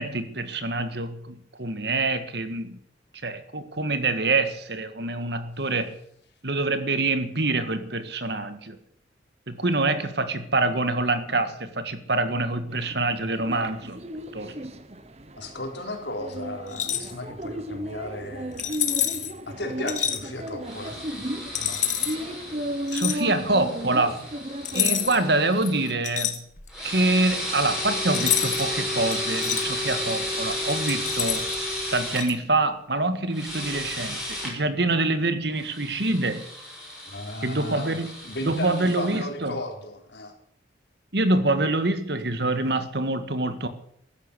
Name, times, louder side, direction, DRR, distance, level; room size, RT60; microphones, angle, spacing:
voice 1, 0.0-2.8 3.2-6.0 6.4-8.8 9.5-14.0 14.3-14.6 22.9-24.2 24.7-26.4 26.8-31.5 31.9-36.4 37.4-38.1 38.4-39.6 41.1-43.7, right 2 dB, 65° right, 10 dB, 1.8 m, -25 dB
sound 1, 12.7-25.3, equal, 35° right, 1.2 m, -35 dB
voice 2, 15.4-18.8 19.5-21.0 21.5-21.8 37.1-38.0 38.2-40.3, left 1 dB, 75° left, 3 dB, 4.0 m, -35 dB
sound 2, 16.7-17.1 18.6-19.3 19.9-20.2 21.5-22.2 22.9-23.2 24.6-25.3 25.6-26.8 28.1-28.7 29.1-29.6 30.7-31.6 32.2-32.3, left 10 dB, 40° left, 1.8 m, -27 dB
sound 3, 20.6-25.9 26.7-32.2 33.3-34.5 35.6-39.2, left 1 dB, 5° right, 5.8 m, -33 dB
14.5 x 11.5 x 8.4 m, 0.67 s
head